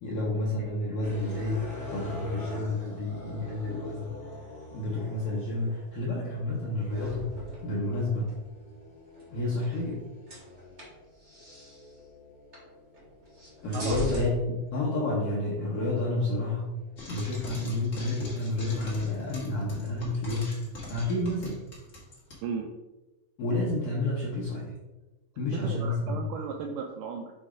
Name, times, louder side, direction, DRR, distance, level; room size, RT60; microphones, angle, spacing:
voice 1, 0.0-4.1 4.7-7.3 7.6-8.3 9.3-10.0 13.6-16.8 17.1-20.6 20.9-21.6 23.4-24.7 25.4-26.3, left 2 dB, 80° left, -5 dB, 1.3 m, -30 dB
sound 1, 1.0-17.3 18.0-20.4, left 2 dB, 10° right, 0.9 m, -46 dB
sound 2, 6.9-8.4 9.1-10.0 10.3-11.9 12.5-12.7 12.9-14.3, equal, 40° right, 1.0 m, -40 dB
Frying (food), 17.0-22.4, left 1 dB, 50° left, 0.9 m, -43 dB
voice 2, 25.5-27.3, right 5 dB, 80° right, 1 dB, 2.0 m, -35 dB
6.5 x 3.2 x 4.9 m, 1.1 s
omnidirectional pair, 4.1 m